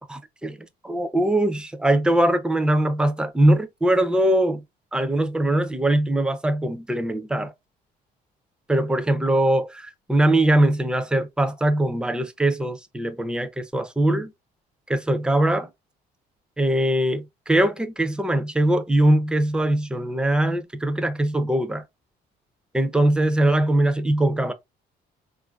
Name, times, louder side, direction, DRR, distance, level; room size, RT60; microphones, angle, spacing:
voice 1, 0.1-0.6 0.8-4.6 4.9-7.5 8.7-14.3 14.9-15.7 16.6-21.8 22.7-24.5, right 1 dB, 5° right, 0.4 m, -21 dB
3.6 x 2.5 x 2.3 m
cardioid pair, 110°, 17 cm